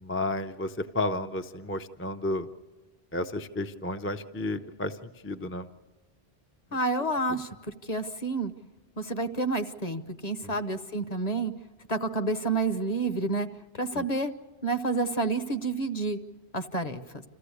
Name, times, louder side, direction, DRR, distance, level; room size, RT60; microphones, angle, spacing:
voice 1, 0.0-2.5 3.1-5.7 10.4-10.5 13.9-14.0, left 2 dB, 15° left, 6 dB, 0.5 m, -32 dB
voice 2, 6.7-7.5 7.9-8.5 9.0-11.5 11.9-13.5 13.8-14.3 14.6-16.2 16.5-17.2, right 2 dB, 40° left, 9 dB, 1.0 m, -29 dB
27.0 x 15.0 x 8.3 m, 1.3 s
omnidirectional pair, 1.1 m